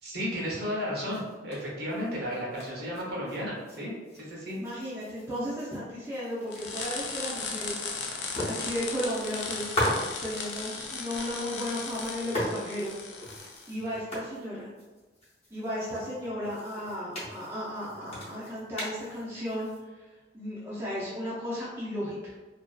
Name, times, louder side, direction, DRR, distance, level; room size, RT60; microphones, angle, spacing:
voice 1, 0.0-3.9 4.2-4.6, equal, 60° right, -5 dB, 0.7 m, -33 dB
sound 1, 1.1-3.8 4.0-6.7 7.1-7.2 7.5-8.0 8.3-10.6 11.6-19.8, left 1 dB, 35° left, 0.6 m, -38 dB
voice 2, 4.6-9.8 10.2-12.9 13.7-14.7 15.5-20.1 20.3-22.3, equal, 15° right, -8 dB, 0.4 m, -35 dB
sound 2, 6.5-13.7, left 4 dB, 70° left, 0.4 m, -37 dB
2.5 x 2.3 x 2.2 m, 1.2 s
head